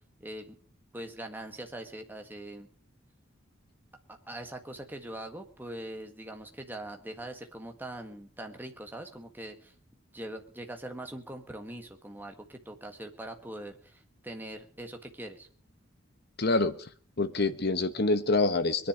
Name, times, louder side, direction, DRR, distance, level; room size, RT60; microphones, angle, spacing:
voice 1, 0.2-0.6 0.9-2.7 4.3-9.7 10.1-15.5, right 1 dB, 10° right, 4 dB, 1.7 m, -42 dB
voice 2, 16.4-16.8 17.2-18.9, left 3 dB, 50° left, 11 dB, 1.2 m, -26 dB
22.5 x 10.5 x 5.1 m, 0.41 s
head